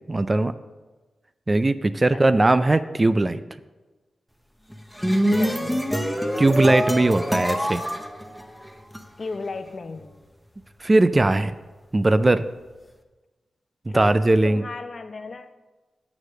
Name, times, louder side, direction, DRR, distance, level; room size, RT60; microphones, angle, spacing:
voice 1, 0.1-0.5 1.5-3.4 6.4-7.8 10.8-11.5 11.9-12.5 13.9-14.6, right 2 dB, 25° right, 12 dB, 0.3 m, -19 dB
sound 1, 4.7-9.0, equal, ahead, 0.8 m, -25 dB
voice 2, 5.2-6.0 7.0-7.2 9.2-10.2 13.9-14.1 14.4-15.5, left 3 dB, 50° left, 8 dB, 0.6 m, -35 dB
8.7 x 4.8 x 6.5 m, 1.2 s
wide cardioid pair, 95°, 0 cm